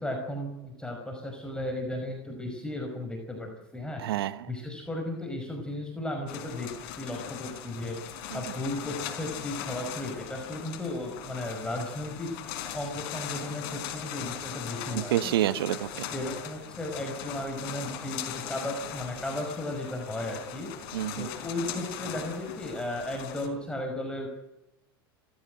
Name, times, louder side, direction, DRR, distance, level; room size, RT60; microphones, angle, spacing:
voice 1, 0.0-4.0 4.5-6.7 7.0-8.1 8.3-12.5 12.7-15.3 16.1-20.9 21.2-24.3, left 1 dB, 5° left, 2 dB, 5.3 m, -35 dB
voice 2, 4.0-4.5 8.3-8.4 14.9-16.1 20.9-21.3, right 12 dB, 70° right, 15 dB, 1.2 m, -28 dB
sound 1, 6.3-23.5, left 9 dB, 55° left, 4.6 m, -39 dB
30.0 x 15.0 x 7.9 m, 0.93 s
hypercardioid pair, 85°, 13 cm